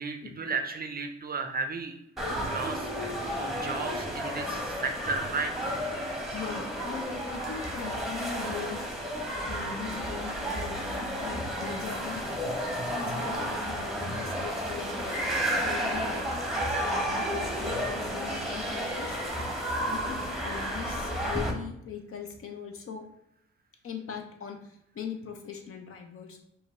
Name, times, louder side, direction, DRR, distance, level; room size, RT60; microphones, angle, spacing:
voice 1, 0.0-2.9 3.4-5.7, right 4 dB, 30° right, 5 dB, 0.5 m, -34 dB
sound 1, 2.2-21.5, equal, ahead, 0.9 m, -32 dB
voice 2, 6.3-8.9 9.4-12.5 12.8-15.2 15.6-16.4 16.8-19.2 19.8-23.1 23.8-26.4, left 6 dB, 45° left, 4 dB, 0.7 m, -40 dB
4.8 x 2.6 x 3.2 m, 0.76 s
cardioid pair, 90°, 30 cm